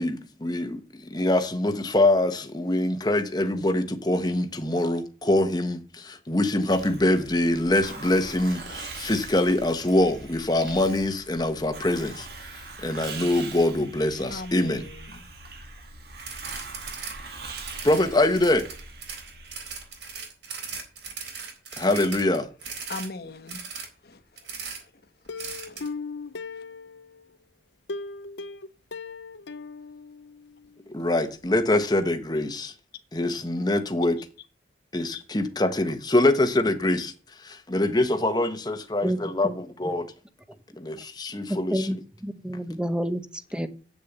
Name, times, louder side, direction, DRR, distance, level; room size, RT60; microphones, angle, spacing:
voice 1, 0.0-12.3 12.5-14.8 17.8-18.7 21.8-22.5 30.9-32.7 33.1-34.2 34.9-37.1 37.4-40.1 40.8-41.9, left 1 dB, 20° left, 1.1 m, -24 dB
Hiss, 6.7-20.2, right 3 dB, 55° right, 1.9 m, -42 dB
voice 2, 14.3-15.3 22.8-23.6 24.0-24.5 24.8-24.9 25.7-25.8 26.5-26.6 35.1-35.2, left 3 dB, 55° left, 1.2 m, -39 dB
sound 1, 16.2-17.1 17.4-23.1 23.5-23.9 24.4-24.8 25.4-25.9, right 5 dB, 75° right, 3.8 m, -38 dB
Plucked string instrument, 25.3-27.3 27.9-30.7 31.0-31.1 31.5-31.6, left 4 dB, 75° left, 0.7 m, -38 dB
voice 3, 39.0-39.6 41.5-43.7, equal, 5° right, 0.9 m, -29 dB
8.8 x 6.9 x 8.0 m
head